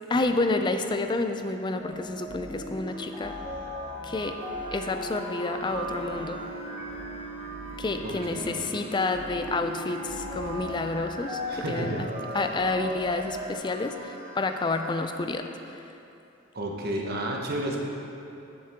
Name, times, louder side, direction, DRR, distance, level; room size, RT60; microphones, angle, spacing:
voice 1, 0.1-3.4 4.0-4.4 4.7-6.4 7.8-11.4 11.7-12.0 12.3-15.5, left 3 dB, 20° left, 6 dB, 0.3 m, -29 dB
sound 1, 1.8-13.5, left 1 dB, 5° right, 0.8 m, -39 dB
sound 2, 2.9-15.0, right 3 dB, 20° right, 1.8 m, -44 dB
sound 3, 4.4-12.4, right 1 dB, 85° left, 0.7 m, -41 dB
voice 2, 8.0-8.6 11.5-12.0 12.3-12.5 16.5-17.8, right 1 dB, 50° right, 0 dB, 1.0 m, -32 dB
9.4 x 7.1 x 3.6 m, 2.8 s
head